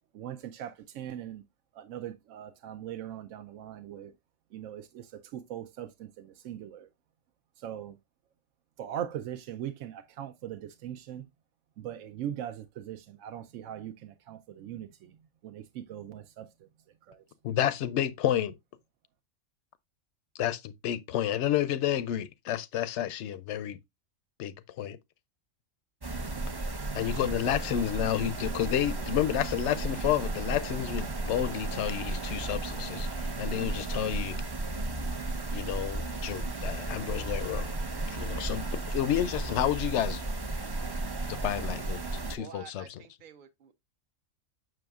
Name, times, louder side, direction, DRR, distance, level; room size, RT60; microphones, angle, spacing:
voice 1, 0.1-1.4 1.7-4.1 4.5-6.9 7.6-8.0 8.8-11.3 11.8-16.7 17.1-17.2, right 10 dB, 75° right, 0.9 m, -40 dB
voice 2, 17.4-18.5 20.3-23.8 24.4-25.0 26.9-34.4 35.5-37.7 38.1-40.2 41.3-42.8, left 11 dB, 70° left, 0.8 m, -30 dB
sound 1, 26.0-42.4, right 2 dB, 30° right, 0.4 m, -34 dB
voice 3, 42.4-43.7, right 8 dB, 45° right, 0.8 m, -49 dB
6.9 x 6.3 x 2.3 m
omnidirectional pair, 1.3 m